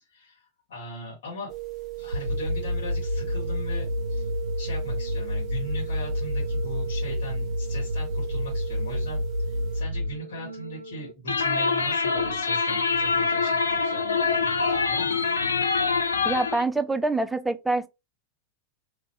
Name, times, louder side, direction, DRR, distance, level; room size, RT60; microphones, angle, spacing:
voice 1, 0.1-1.5 2.0-4.3 4.6-15.2, equal, 55° left, 1.6 m, -40 dB
sound 1, 1.5-9.8, right 19 dB, 30° right, 0.8 m, -38 dB
sound 2, 2.1-11.1, left 1 dB, 85° right, 0.3 m, -29 dB
sound 3, 11.3-16.6, left 4 dB, 75° left, 0.4 m, -25 dB
voice 2, 16.2-17.9, right 2 dB, 5° right, 0.3 m, -25 dB
2.6 x 2.6 x 3.0 m
figure-of-eight pair, 90°, 0 cm